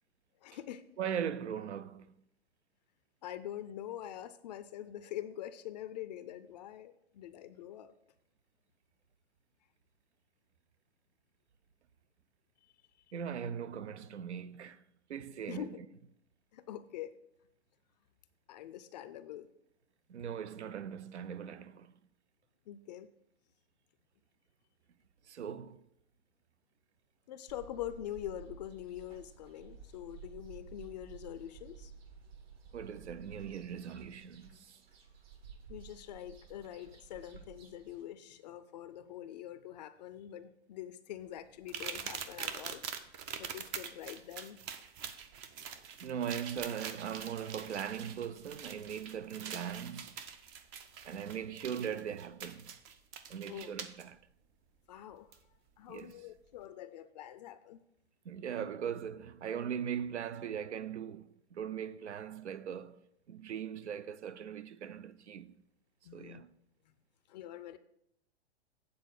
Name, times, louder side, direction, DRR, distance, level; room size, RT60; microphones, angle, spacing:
voice 1, 0.4-0.8 3.2-7.9 15.5-15.7 16.5-17.1 18.5-19.5 22.7-23.1 27.3-31.9 35.7-42.8 43.4-44.6 53.5-53.7 54.9-55.4 55.8-57.8 66.0-66.4 66.9-67.0 67.3-67.8, left 12 dB, 40° left, 0.4 m, -44 dB
voice 2, 1.0-2.1 13.1-14.8 15.1-15.7 20.1-21.9 25.3-25.8 32.7-34.8 46.0-50.2 51.1-52.7 53.3-54.2 55.9-56.1 58.2-63.0 63.3-65.5 66.1-66.5, right 8 dB, 85° right, 0.6 m, -40 dB
sound 1, 27.5-38.0, right 6 dB, 60° right, 1.8 m, -53 dB
sound 2, 41.7-54.0 55.3-55.4 56.0-56.1, right 7 dB, 20° right, 0.4 m, -44 dB
8.6 x 4.0 x 6.3 m
hypercardioid pair, 125°, 33 cm